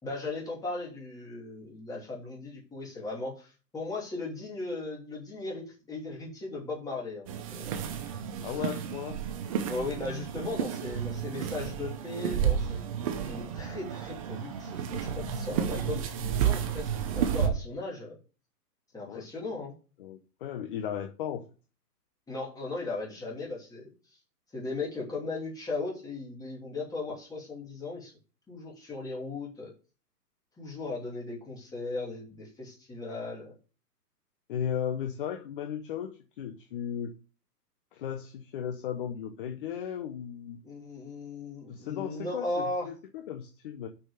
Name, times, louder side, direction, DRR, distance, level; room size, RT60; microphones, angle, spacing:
voice 1, 0.0-7.9 9.7-12.8 13.2-18.2 18.9-19.7 22.3-23.9 24.5-28.1 28.5-29.7 30.6-33.5 40.6-42.9, left 3 dB, 5° left, -3 dB, 2.9 m, -37 dB
sound 1, 7.3-17.5, right 8 dB, 20° right, 0.7 m, -31 dB
voice 2, 8.4-9.2 19.1-19.3 20.0-21.5 34.5-37.1 37.9-40.6 41.7-43.9, left 9 dB, 35° left, 7 dB, 0.8 m, -36 dB
6.4 x 6.1 x 6.7 m, 0.34 s
hypercardioid pair, 155°, 49 cm